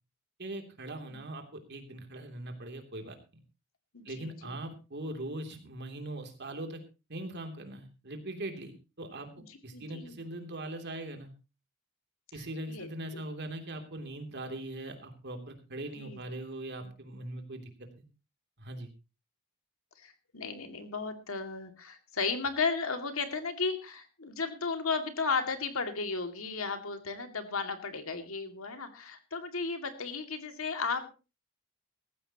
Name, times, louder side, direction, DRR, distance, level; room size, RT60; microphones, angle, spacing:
voice 1, 0.4-1.4 1.7-3.4 4.0-6.8 7.1-9.3 9.6-11.3 12.3-18.0 18.6-18.9, right 1 dB, 55° right, 5 dB, 3.0 m, -41 dB
voice 2, 3.9-4.5 9.5-10.2 12.7-13.2 15.9-16.2 20.0-31.1, left 4 dB, 75° left, 6 dB, 2.4 m, -34 dB
18.5 x 15.0 x 3.0 m, 0.30 s
head